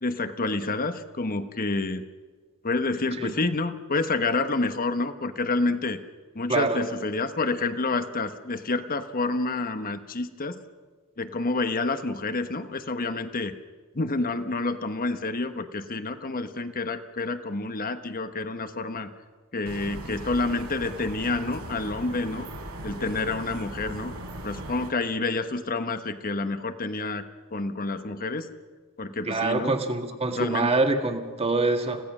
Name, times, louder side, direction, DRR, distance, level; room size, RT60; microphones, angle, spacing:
voice 1, 0.0-2.0 2.6-6.0 6.3-10.6 11.2-13.5 13.9-19.1 19.5-22.5 22.8-24.1 24.4-27.2 27.5-28.5 29.0-29.7 30.3-30.8, left 3 dB, 40° left, 9 dB, 1.2 m, -28 dB
sound 1, 19.6-24.9, right 1 dB, 85° right, 4.1 m, -38 dB
voice 2, 29.3-32.0, right 3 dB, 30° right, 5 dB, 1.8 m, -25 dB
30.0 x 16.5 x 6.2 m, 1.4 s
head